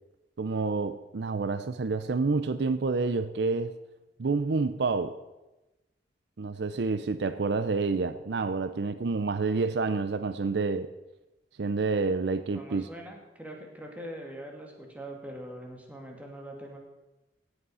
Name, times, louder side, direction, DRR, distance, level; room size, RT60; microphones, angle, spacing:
voice 1, 0.4-3.8 4.2-5.2 6.4-10.9 11.6-12.9, right 4 dB, 70° right, 12 dB, 0.5 m, -28 dB
voice 2, 12.5-16.8, right 1 dB, 10° right, 1 dB, 2.3 m, -42 dB
16.5 x 8.0 x 5.6 m, 1.0 s
head